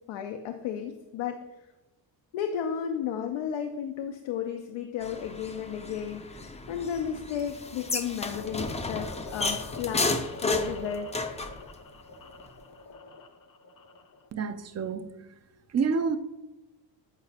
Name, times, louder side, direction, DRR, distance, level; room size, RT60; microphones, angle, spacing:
voice 1, 0.1-1.4 2.3-10.1 10.4-11.1, left 8 dB, 85° left, 5 dB, 0.6 m, -33 dB
sound 1, 5.0-11.6, left 3 dB, 15° left, 0.5 m, -33 dB
sound 2, 8.3-14.3, left 3 dB, 45° left, 0.8 m, -45 dB
voice 2, 14.3-15.1 15.7-16.2, right 5 dB, 35° right, 10 dB, 0.5 m, -28 dB
8.2 x 4.8 x 2.8 m, 1.1 s
cardioid pair, 95°, 46 cm